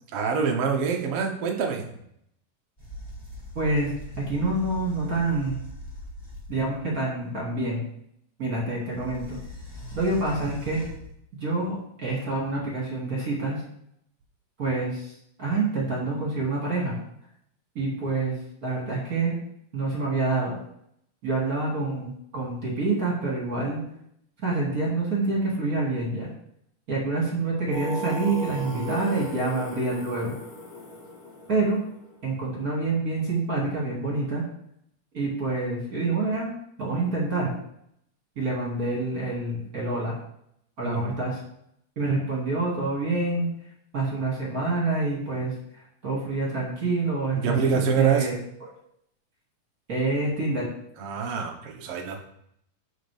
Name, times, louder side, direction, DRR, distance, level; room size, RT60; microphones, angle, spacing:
voice 1, 0.1-1.9 40.8-41.2 47.3-48.3 51.0-52.2, right 6 dB, 60° right, 2 dB, 1.7 m, -26 dB
sound 1, 2.8-6.9 8.9-11.1, left 1 dB, 20° left, 1.0 m, -41 dB
voice 2, 3.5-5.6 6.5-7.8 8.4-9.4 10.0-10.8 11.4-13.6 14.6-15.1 15.4-17.0 17.7-18.4 18.6-19.3 19.7-20.6 21.2-23.8 24.4-26.3 26.9-30.4 31.5-31.8 32.2-34.4 35.1-36.5 36.8-37.5 38.4-40.2 40.8-41.4 42.0-43.5 43.9-45.5 46.0-48.4 49.9-50.7, right 3 dB, 30° right, -4 dB, 2.4 m, -27 dB
Singing, 27.7-32.4, right 1 dB, 55° left, 1.6 m, -37 dB
12.5 x 5.3 x 3.5 m, 0.73 s
omnidirectional pair, 3.8 m